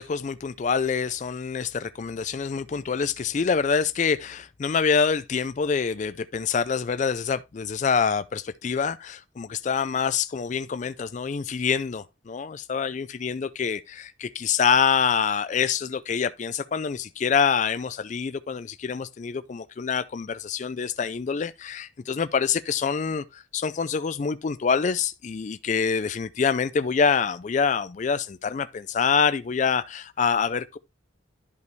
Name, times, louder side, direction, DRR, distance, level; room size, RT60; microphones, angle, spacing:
voice 1, 0.0-30.8, left 6 dB, 40° left, 0.3 m, -26 dB
10.5 x 5.3 x 3.1 m
head